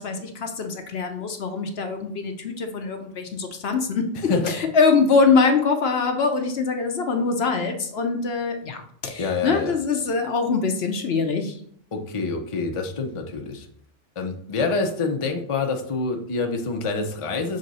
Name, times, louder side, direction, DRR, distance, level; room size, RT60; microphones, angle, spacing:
voice 1, 0.0-4.0 4.5-11.6, left 4 dB, 60° left, 5 dB, 0.9 m, -23 dB
voice 2, 9.2-9.7 11.9-13.7 14.2-17.6, left 4 dB, 35° left, 4 dB, 0.6 m, -26 dB
6.4 x 3.7 x 4.0 m, 0.63 s
omnidirectional pair, 1.3 m